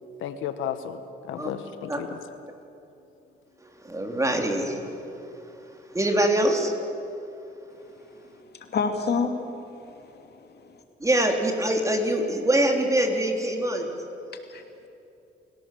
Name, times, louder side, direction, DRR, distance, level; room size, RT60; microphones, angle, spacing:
voice 1, 0.2-2.2, left 9 dB, 90° left, 10 dB, 1.2 m, -33 dB
voice 2, 3.6-4.9 5.2-5.4 5.9-6.7 7.3-7.5 11.0-13.9, right 1 dB, 15° right, 3 dB, 3.7 m, -24 dB
voice 3, 8.7-10.6 14.5-14.6, left 4 dB, 55° left, 5 dB, 2.8 m, -29 dB
28.5 x 17.5 x 7.7 m, 2.8 s
cardioid pair, 90°, 20 cm